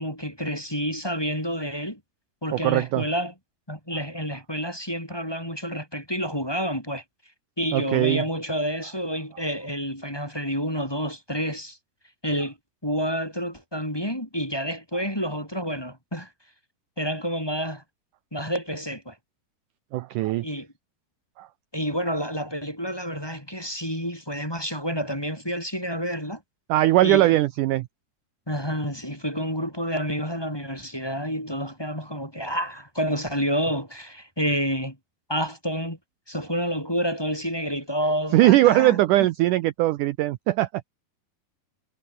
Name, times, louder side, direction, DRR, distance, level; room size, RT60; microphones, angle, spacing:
voice 1, 0.0-2.0 2.4-3.3 3.7-7.0 7.6-11.8 12.2-12.6 12.8-16.3 17.0-17.8 18.3-19.2 20.4-20.7 21.7-26.4 27.0-27.3 28.5-35.0 35.3-36.0 36.3-39.0, equal, 5° left, 4.0 m, -29 dB
voice 2, 2.5-3.0 7.7-8.2 19.9-20.5 21.4-21.5 26.7-27.9 38.3-40.7, right 16 dB, 80° right, 1.9 m, -20 dB
omnidirectional pair, 4.5 m